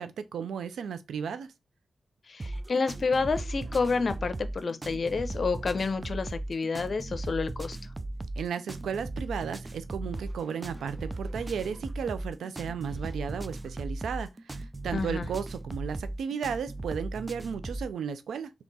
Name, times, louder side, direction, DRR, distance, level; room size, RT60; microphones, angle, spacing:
voice 1, 0.0-1.5 8.4-18.5, right 7 dB, 85° right, 0.4 m, -34 dB
voice 2, 2.3-7.8 14.9-15.3, left 4 dB, 60° left, 0.7 m, -29 dB
sound 1, 2.4-17.9, right 2 dB, 30° right, 0.5 m, -37 dB
3.5 x 2.9 x 4.0 m
supercardioid pair, 45°, 0 cm